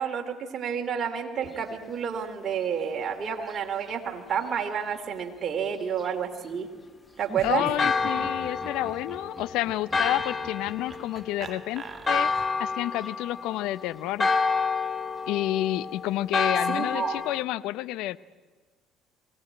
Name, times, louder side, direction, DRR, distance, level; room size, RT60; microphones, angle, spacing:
voice 1, 0.0-6.7 7.2-7.6 16.7-17.2, right 7 dB, 45° right, 3 dB, 2.7 m, -30 dB
Laughter, 7.2-12.7, right 4 dB, 30° right, 1.6 m, -43 dB
voice 2, 7.4-12.3 12.6-14.3 15.3-18.2, left 15 dB, 75° left, 18 dB, 0.6 m, -30 dB
Church bell, 7.8-17.4, left 4 dB, 25° left, 1.2 m, -29 dB
22.5 x 17.5 x 8.7 m, 1.4 s
supercardioid pair, 75°, 0 cm